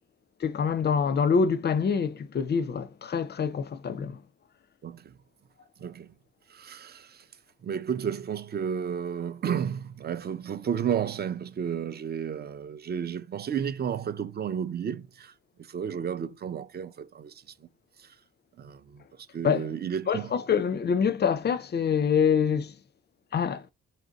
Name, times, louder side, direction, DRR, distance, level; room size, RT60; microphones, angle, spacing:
voice 1, 0.4-4.2 19.4-19.6 20.1-22.8 23.3-23.7, left 6 dB, 35° left, 0.5 m, -25 dB
voice 2, 4.8-5.2 5.8-6.1 6.5-7.3 7.6-15.3 15.6-17.4 18.0-18.1 18.6-20.3, right 8 dB, 35° right, 0.4 m, -32 dB
4.2 x 2.5 x 3.9 m
cardioid pair, 90°, 30 cm